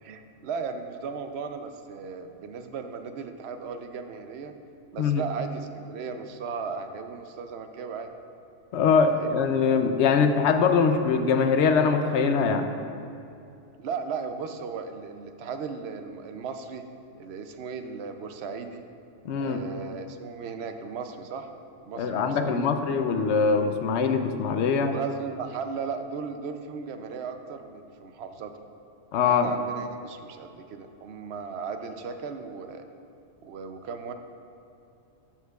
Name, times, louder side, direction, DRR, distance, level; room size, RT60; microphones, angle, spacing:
voice 1, 0.0-4.5 4.9-8.1 9.1-9.5 13.8-16.8 17.2-18.8 19.4-21.5 21.9-22.7 24.8-28.5 29.2-32.8 33.4-34.1, right 5 dB, 65° right, 7 dB, 0.8 m, -36 dB
voice 2, 8.7-12.7 19.2-19.6 22.0-24.9 29.1-29.5, left 5 dB, 70° left, 7 dB, 0.8 m, -23 dB
12.5 x 7.2 x 2.3 m, 2.7 s
omnidirectional pair, 1.3 m